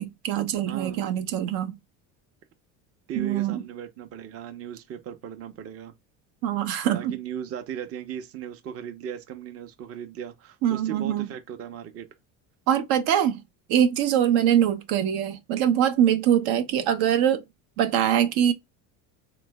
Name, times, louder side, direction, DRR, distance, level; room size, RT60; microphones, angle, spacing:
voice 1, 0.0-1.8 3.2-3.6 6.4-7.1 10.6-11.3 12.7-13.4 13.7-17.4 17.8-18.5, right 10 dB, 75° right, 0.6 m, -23 dB
voice 2, 0.7-1.1 3.1-5.9 6.8-12.1 14.2-14.5, right 9 dB, 35° right, 0.6 m, -37 dB
3.2 x 2.0 x 3.3 m
cardioid pair, 115°, 39 cm